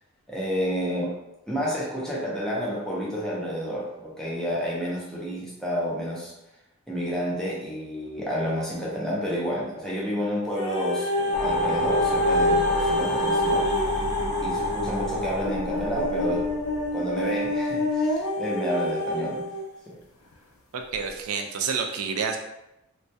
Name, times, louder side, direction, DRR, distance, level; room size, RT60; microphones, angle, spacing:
voice 1, 0.3-1.1 1.5-6.3 6.9-13.7 14.4-16.5 16.9-19.4 19.9-20.0, equal, 5° left, -6 dB, 0.5 m, -30 dB
sound 1, 10.6-19.7 20.3-20.4, left 1 dB, 90° left, 0.5 m, -27 dB
sound 2, 11.3-17.8, left 1 dB, 20° right, 0.9 m, -30 dB
voice 2, 20.7-22.4, right 6 dB, 75° right, 3 dB, 0.4 m, -29 dB
2.2 x 2.2 x 2.6 m, 0.90 s
head